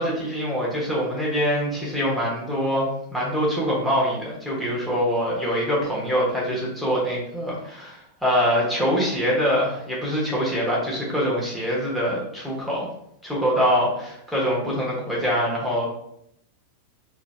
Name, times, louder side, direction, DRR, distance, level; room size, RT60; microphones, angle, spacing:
voice 1, 0.0-12.9 13.2-15.9, equal, 5° left, -6 dB, 1.3 m, -24 dB
3.7 x 3.0 x 2.3 m, 0.75 s
figure-of-eight pair, 90°, 0 cm